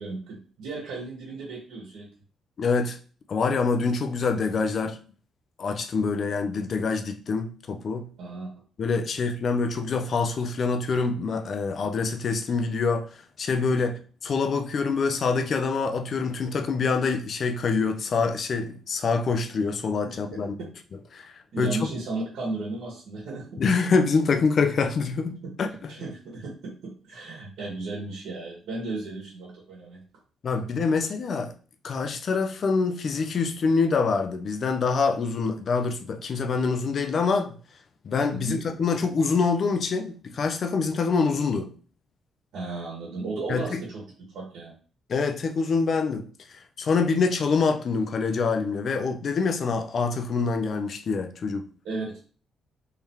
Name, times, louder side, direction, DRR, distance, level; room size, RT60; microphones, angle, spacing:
voice 1, 0.0-2.1 8.2-8.5 20.0-20.1 21.5-23.6 25.9-30.0 38.3-38.6 42.5-44.0 44.3-44.7 51.8-52.2, right 3 dB, 80° right, 1.5 m, -35 dB
voice 2, 2.6-3.0 3.3-5.0 5.6-8.1 8.8-20.5 21.1-21.8 23.6-25.7 30.4-31.5 31.8-37.6 38.0-41.7 43.5-43.8 45.1-51.7, left 4 dB, 50° left, 0.6 m, -25 dB
3.4 x 2.9 x 3.7 m
cardioid pair, 90°, 0 cm